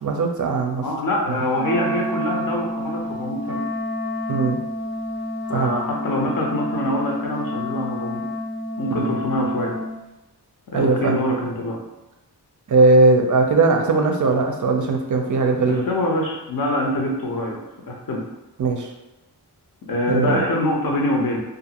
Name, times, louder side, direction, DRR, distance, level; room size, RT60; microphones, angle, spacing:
voice 1, 0.0-0.8 1.3-1.4 4.3-4.6 5.5-5.7 9.0-9.1 10.7-11.2 12.7-15.8 18.6-18.9 20.1-20.4, right 3 dB, 50° right, 3 dB, 0.5 m, -19 dB
voice 2, 0.8-3.6 5.5-8.2 8.8-9.7 10.7-11.8 15.7-17.6 17.9-18.2 19.9-21.4, left 1 dB, 55° left, -1 dB, 0.7 m, -24 dB
Wind instrument woodwind instrument, 1.5-10.0, left 1 dB, 5° right, 0.6 m, -29 dB
2.5 x 2.4 x 2.8 m, 1.0 s
wide cardioid pair, 100°, 41 cm